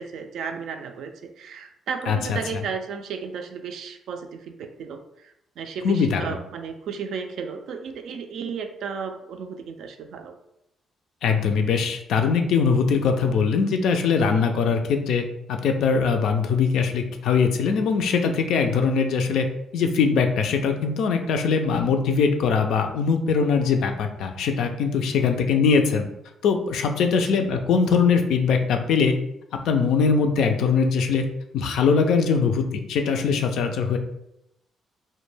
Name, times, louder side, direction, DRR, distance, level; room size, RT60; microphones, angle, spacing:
voice 1, 0.0-10.3 25.2-25.4 27.1-27.4, right 6 dB, 75° right, 6 dB, 0.3 m, -34 dB
voice 2, 2.1-2.6 5.8-6.3 11.2-19.5 19.7-26.1 26.4-29.1 29.6-31.2 31.5-34.0, left 5 dB, 80° left, 5 dB, 0.3 m, -21 dB
2.2 x 2.1 x 3.1 m, 0.81 s
cardioid pair, 90°, 0 cm